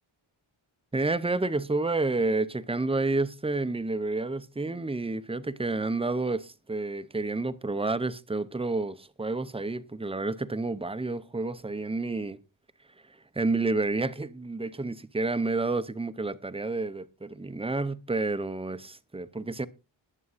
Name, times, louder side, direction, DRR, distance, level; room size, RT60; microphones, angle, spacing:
voice 1, 0.9-12.4 13.0-19.7, right 3 dB, 10° right, 0.6 m, -30 dB
20.5 x 8.3 x 2.5 m
wide cardioid pair, 145°, 49 cm